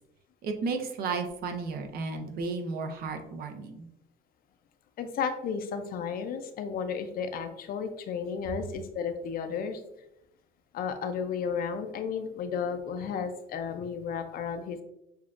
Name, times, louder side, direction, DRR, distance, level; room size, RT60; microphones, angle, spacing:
voice 1, 0.4-3.9, right 4 dB, 65° right, 5 dB, 0.7 m, -33 dB
voice 2, 5.0-9.8 10.7-14.8, left 6 dB, 60° left, 7 dB, 0.6 m, -33 dB
6.7 x 2.4 x 2.5 m, 0.84 s
cardioid pair, 110°, 17 cm